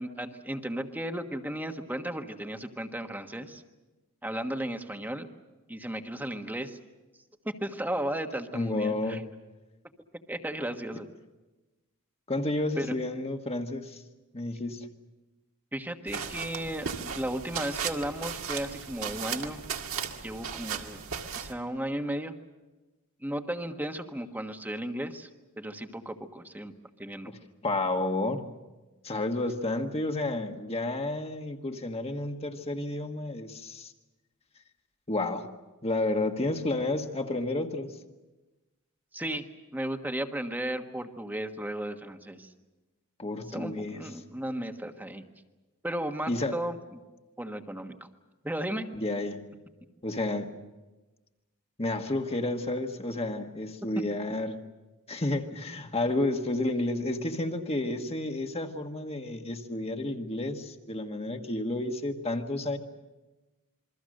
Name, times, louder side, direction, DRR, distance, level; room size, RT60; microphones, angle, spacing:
voice 1, 0.0-3.6 4.2-5.3 5.7-6.8 7.4-9.2 10.3-11.1 12.8-12.9 15.7-19.6 20.2-21.0 21.3-22.3 23.2-25.3 25.6-26.7 27.0-27.3 39.1-39.4 39.7-42.5 43.5-45.2 45.8-47.0 47.4-48.1 48.4-48.9, right 1 dB, 10° right, 5 dB, 1.4 m, -35 dB
voice 2, 8.5-9.2 12.3-14.0 14.3-14.9 27.3-27.4 27.6-28.5 29.0-33.9 35.1-35.5 35.8-38.0 43.2-44.0 46.3-46.6 48.9-49.4 50.0-50.5 51.8-54.6 55.1-62.8, left 2 dB, 30° left, 4 dB, 1.7 m, -31 dB
sound 1, 16.1-21.5, right 6 dB, 65° right, 2.0 m, -36 dB
28.0 x 23.0 x 6.6 m, 1.1 s
head